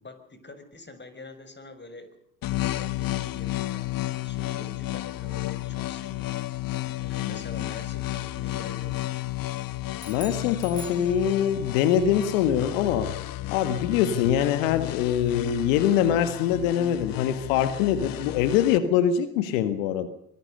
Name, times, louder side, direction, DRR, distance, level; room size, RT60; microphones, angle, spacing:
voice 1, 0.0-2.1 2.4-6.3 7.0-9.3, left 2 dB, 25° left, 10 dB, 6.1 m, -45 dB
sound 1, 2.4-18.8, left 16 dB, 55° left, 1.1 m, -32 dB
sound 2, 10.0-11.7, left 1 dB, 10° left, 6.8 m, -44 dB
voice 2, 10.1-13.1 13.5-20.1, left 9 dB, 80° left, 11 dB, 1.7 m, -24 dB
24.5 x 19.0 x 6.7 m, 0.72 s
hypercardioid pair, 55°, 40 cm